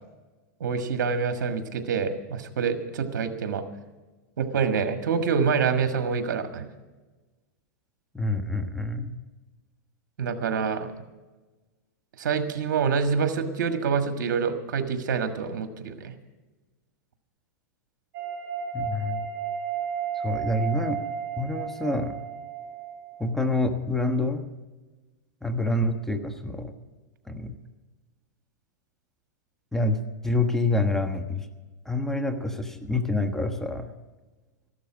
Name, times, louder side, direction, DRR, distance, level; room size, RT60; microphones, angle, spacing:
voice 1, 0.6-3.6 4.4-6.6 10.2-10.9 12.2-16.1, right 6 dB, 75° right, 7 dB, 1.5 m, -26 dB
voice 2, 8.1-9.1 18.7-19.3 20.1-21.0 21.4-22.1 23.2-24.5 25.4-26.7 27.3-27.5 29.7-31.5 31.8-33.9, left 2 dB, 5° left, 5 dB, 1.2 m, -27 dB
sound 1, 18.1-23.4, right 7 dB, 35° right, 4.7 m, -33 dB
14.5 x 12.5 x 6.1 m, 1.2 s
hypercardioid pair, 120°, 10 cm